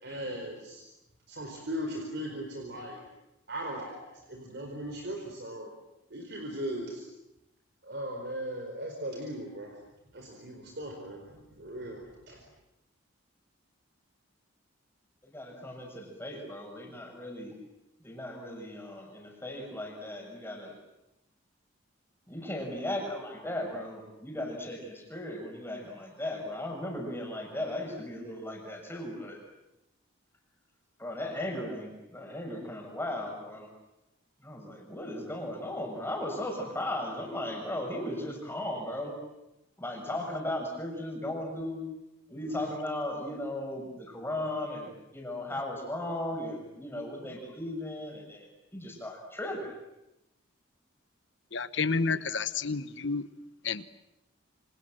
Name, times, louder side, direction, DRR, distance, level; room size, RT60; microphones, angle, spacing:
voice 1, 0.0-0.8 1.3-3.0 3.5-5.7 6.1-7.0 7.8-9.7 10.1-12.4, right 1 dB, 55° right, 2 dB, 4.6 m, -38 dB
voice 2, 15.2-17.5 18.0-20.7 22.3-29.4 31.0-33.7 34.4-39.1 39.8-41.8 42.3-49.7, left 1 dB, 10° left, 1 dB, 6.5 m, -36 dB
voice 3, 51.5-53.3 53.6-53.8, left 4 dB, 60° left, 14 dB, 1.2 m, -30 dB
28.0 x 26.0 x 7.8 m, 0.92 s
head